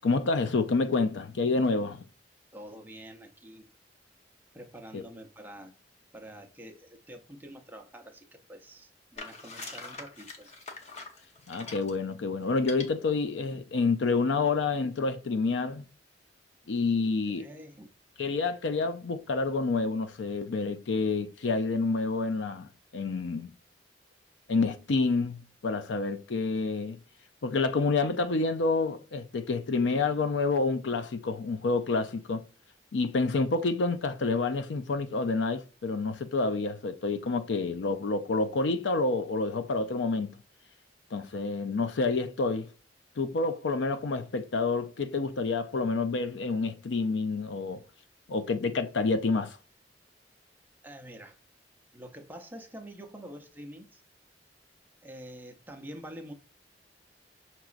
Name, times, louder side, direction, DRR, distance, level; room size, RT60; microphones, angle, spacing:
voice 1, 0.0-2.0 4.9-5.0 11.5-15.8 16.7-17.5 18.2-23.5 24.5-27.0 27.4-32.5 32.9-40.3 41.1-42.7 43.2-47.8 48.3-49.6, left 3 dB, 85° left, 0.5 m, -28 dB
voice 2, 2.5-3.7 4.5-5.7 6.1-10.5 17.3-17.9 50.8-51.4 51.9-54.0 55.0-56.3, equal, 10° right, 0.6 m, -46 dB
sound 1, 9.2-12.0 12.6-12.8, left 3 dB, 40° left, 0.8 m, -43 dB
5.9 x 2.9 x 2.5 m
head